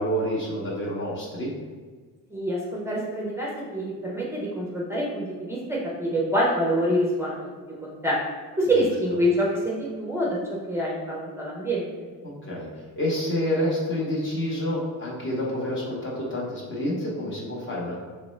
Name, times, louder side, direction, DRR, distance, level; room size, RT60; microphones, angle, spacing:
voice 1, 0.0-1.5 12.2-18.0, equal, 35° left, -5 dB, 0.8 m, -28 dB
voice 2, 2.3-7.5 7.8-8.2 8.6-11.9, equal, 5° right, -5 dB, 0.5 m, -26 dB
5.0 x 3.1 x 3.1 m, 1.5 s
cardioid pair, 180°, 36 cm